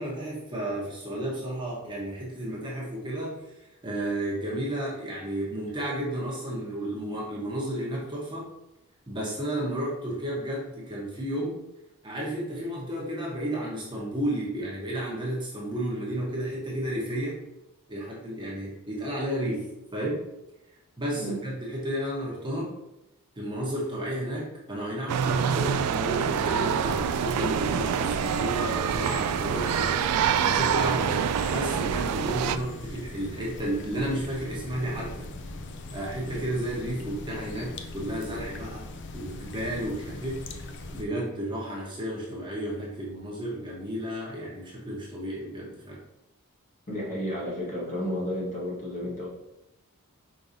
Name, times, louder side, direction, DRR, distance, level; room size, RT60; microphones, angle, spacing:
voice 1, 0.0-3.4 3.8-8.5 9.1-11.6 12.0-17.4 17.9-20.2 21.0-22.7 23.3-35.3 35.9-38.8 39.1-46.0, right 1 dB, 20° right, -5 dB, 1.0 m, -32 dB
sound 1, 25.1-32.6, right 8 dB, 85° right, 0.3 m, -26 dB
sound 2, 26.8-41.0, left 2 dB, 55° left, 0.5 m, -40 dB
voice 2, 46.9-49.3, equal, 35° left, -5 dB, 1.5 m, -32 dB
5.1 x 3.8 x 2.7 m, 0.89 s
head